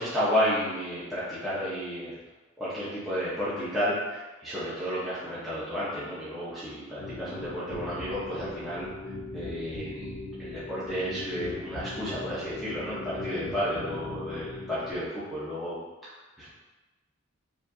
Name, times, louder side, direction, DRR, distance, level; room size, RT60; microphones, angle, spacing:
voice 1, 0.0-2.1 2.6-8.9 9.3-10.1 10.4-15.8 16.4-16.5, equal, ahead, -12 dB, 0.7 m, -32 dB
sound 1, 7.0-14.9, left 2 dB, 85° left, 0.8 m, -39 dB
4.9 x 2.6 x 2.6 m, 1.1 s
head